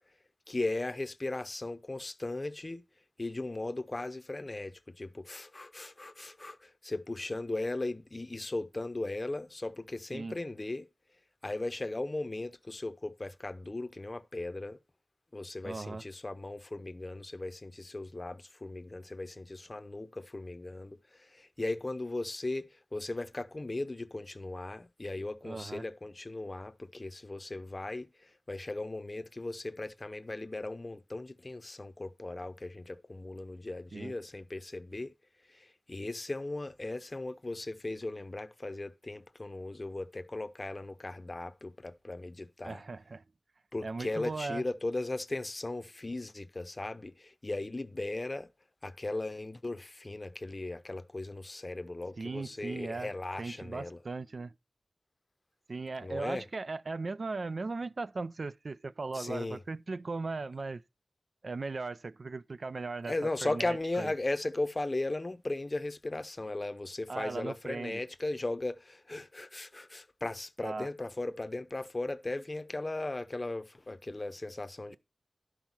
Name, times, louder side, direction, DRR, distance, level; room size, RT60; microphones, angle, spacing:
voice 1, 0.5-2.8 3.2-10.9 11.4-14.8 15.3-35.1 35.5-42.8 43.7-48.5 48.8-54.0 56.0-56.4 59.1-59.6 63.1-75.0, left 2 dB, 35° left, 0.7 m, -37 dB
voice 2, 15.6-16.0 25.4-25.9 33.9-34.2 42.6-43.2 43.8-44.6 52.2-53.1 53.4-54.5 55.7-60.8 61.4-63.1 63.4-64.1 67.1-68.0 70.6-70.9, right 3 dB, 60° right, 0.4 m, -38 dB
11.5 x 5.7 x 4.4 m
wide cardioid pair, 75°, 0 cm